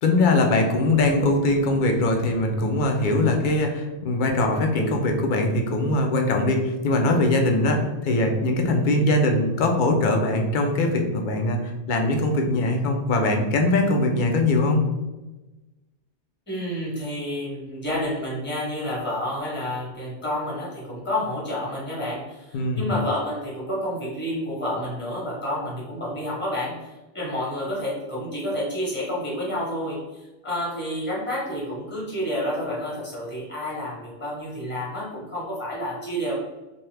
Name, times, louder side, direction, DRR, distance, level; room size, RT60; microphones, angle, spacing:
voice 1, 0.0-11.6 11.9-14.8 22.5-22.9, left 2 dB, 60° left, 3 dB, 0.5 m, -21 dB
voice 2, 16.5-26.9 27.1-36.3, left 1 dB, 10° left, -6 dB, 1.0 m, -29 dB
2.8 x 2.2 x 3.2 m, 1.1 s
omnidirectional pair, 1.2 m